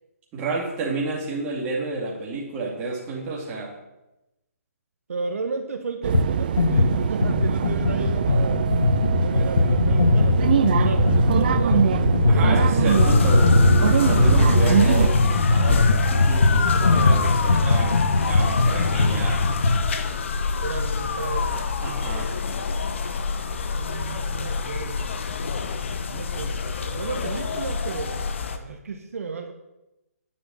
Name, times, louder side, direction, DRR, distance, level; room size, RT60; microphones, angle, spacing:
voice 1, 0.3-3.7 12.3-19.4 21.8-22.3, right 3 dB, 15° right, -3 dB, 2.5 m, -30 dB
voice 2, 5.1-8.6 9.2-12.7 20.6-21.5 23.8-25.0 26.1-29.5, right 4 dB, 65° right, 4 dB, 1.4 m, -33 dB
sound 1, 6.0-15.1, right 8 dB, 35° right, 0.4 m, -23 dB
sound 2, 6.1-6.3 6.6-19.9, left 2 dB, 80° left, 1.2 m, -20 dB
sound 3, 12.9-28.6, left 5 dB, 50° left, 1.0 m, -27 dB
10.0 x 6.2 x 7.7 m, 0.95 s
hypercardioid pair, 165°, 8 cm